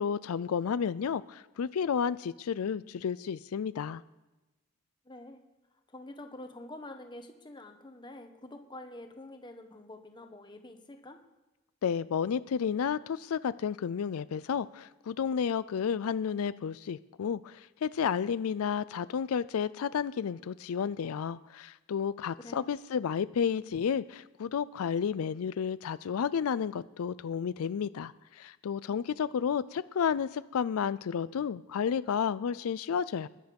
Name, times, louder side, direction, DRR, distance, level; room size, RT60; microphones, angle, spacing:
voice 1, 0.0-4.0 11.8-33.3, left 7 dB, 90° left, 16 dB, 0.4 m, -31 dB
voice 2, 5.0-5.4 5.9-11.2 22.4-22.7, left 1 dB, 20° left, 6 dB, 1.1 m, -47 dB
20.5 x 10.5 x 5.3 m, 1.1 s
head